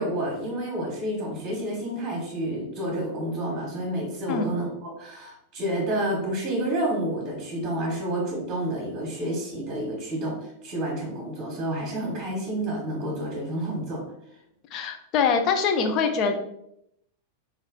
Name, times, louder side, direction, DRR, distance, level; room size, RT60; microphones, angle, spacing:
voice 1, 0.0-14.0, right 1 dB, 25° right, -2 dB, 1.4 m, -29 dB
voice 2, 14.7-16.3, left 5 dB, 35° left, 6 dB, 0.6 m, -23 dB
3.2 x 3.2 x 3.7 m, 0.77 s
figure-of-eight pair, 90°, 0 cm